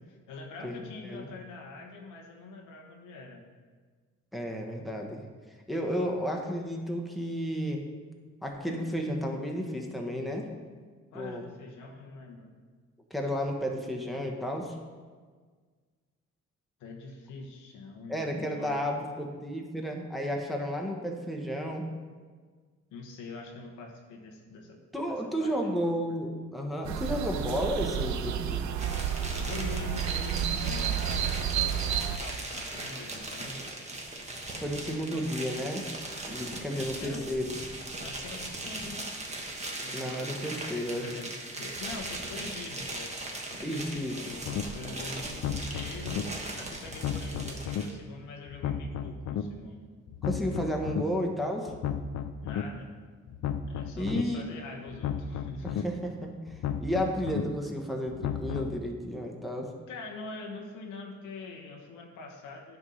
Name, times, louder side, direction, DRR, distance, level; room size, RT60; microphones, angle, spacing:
voice 1, 0.0-3.4 11.1-12.5 16.8-19.1 22.9-24.8 25.1-25.8 29.4-33.7 36.6-37.3 38.0-39.1 39.7-40.5 41.0-49.9 52.4-52.9 53.7-55.9 59.9-62.8, left 3 dB, 90° left, 2 dB, 1.1 m, -44 dB
voice 2, 4.3-5.2 5.7-7.8 8.4-10.5 11.1-11.4 13.1-14.8 18.1-21.9 24.9-28.8 34.5-35.9 36.2-37.6 39.9-41.0 43.6-44.3 50.2-51.7 54.0-54.6 55.6-59.7, equal, ahead, 1 dB, 1.1 m, -32 dB
sound 1, 26.8-32.2, right 9 dB, 70° right, 0.5 m, -31 dB
sound 2, 28.8-47.9, right 2 dB, 20° right, 1.2 m, -39 dB
sound 3, 44.4-44.6 45.3-46.2 46.9-47.8 48.5-49.4 50.1-51.0 51.7-52.6 53.3-54.2 54.9-55.8 56.5-57.4 58.1-58.8, left 8 dB, 60° left, 0.5 m, -33 dB
9.5 x 3.6 x 5.5 m, 1.5 s
cardioid pair, 90°, 30 cm